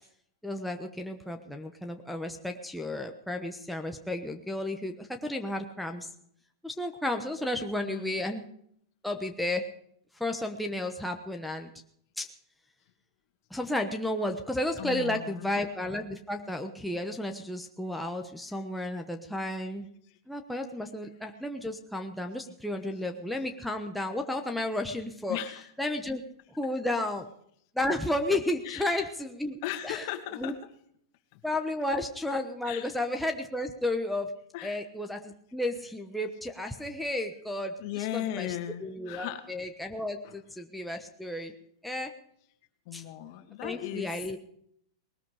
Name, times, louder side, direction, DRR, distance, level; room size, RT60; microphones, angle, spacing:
voice 1, 0.4-6.1 6.6-8.5 9.0-9.6 10.2-11.7 12.2-12.3 13.5-19.9 20.3-25.4 25.8-26.2 26.6-27.3 27.7-30.1 30.4-30.5 31.4-34.3 34.6-38.6 38.8-41.5 41.8-42.1 42.9-43.0 43.6-44.4, left 1 dB, ahead, 3 dB, 1.1 m, -32 dB
voice 2, 7.9-8.2 14.8-15.5 25.3-25.6 28.6-29.1 29.6-30.6 31.3-31.4 32.6-32.9 34.5-34.8 37.8-39.4 40.2-40.4 42.9-44.4, left 13 dB, 50° left, 8 dB, 2.2 m, -37 dB
20.0 x 13.0 x 4.9 m, 0.67 s
supercardioid pair, 145°, 2 cm